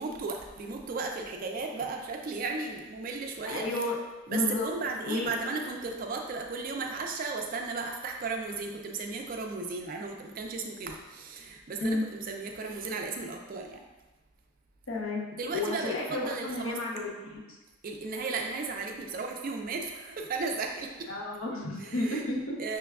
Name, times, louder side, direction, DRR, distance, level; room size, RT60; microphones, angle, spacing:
voice 1, 0.0-3.6 4.3-13.8 15.4-16.8 17.8-21.1 21.8-22.2 22.6-22.8, right 4 dB, 40° right, 2 dB, 0.3 m, -35 dB
voice 2, 3.5-4.0 4.3-4.7 5.1-5.3 11.8-12.1 14.9-17.4 21.1-22.6, left 2 dB, 75° left, -1 dB, 0.7 m, -32 dB
5.8 x 2.2 x 2.3 m, 1.1 s
head